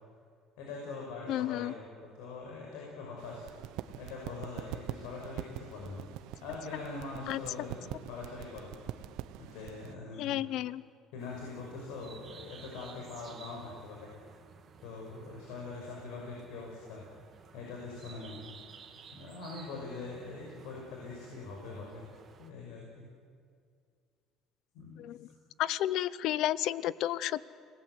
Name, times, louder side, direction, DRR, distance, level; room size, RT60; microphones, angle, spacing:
voice 1, 0.6-3.4 4.0-6.1 6.4-8.8 9.4-10.5 11.1-14.1 14.8-17.0 17.5-18.5 19.1-22.1 22.4-23.1 24.7-25.0, left 3 dB, 90° left, -1 dB, 5.8 m, -43 dB
voice 2, 1.3-1.7 7.3-7.4 10.2-10.8 25.0-25.3 25.6-27.4, left 13 dB, 60° left, 18 dB, 0.7 m, -31 dB
sound 1, 3.2-9.9, right 13 dB, 75° right, 1.0 m, -44 dB
sound 2, 11.2-22.5, right 6 dB, 30° right, 2.0 m, -54 dB
29.0 x 20.0 x 8.1 m, 2.2 s
cardioid pair, 155°, 0 cm